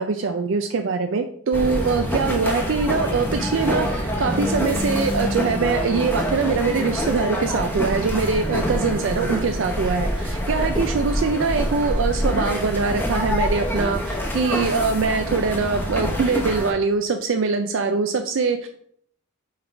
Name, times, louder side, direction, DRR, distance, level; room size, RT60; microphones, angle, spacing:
voice 1, 0.0-18.7, right 4 dB, 60° right, 6 dB, 0.4 m, -23 dB
sound 1, 1.5-16.7, equal, 10° left, 0.9 m, -26 dB
5.5 x 3.8 x 4.5 m, 0.66 s
head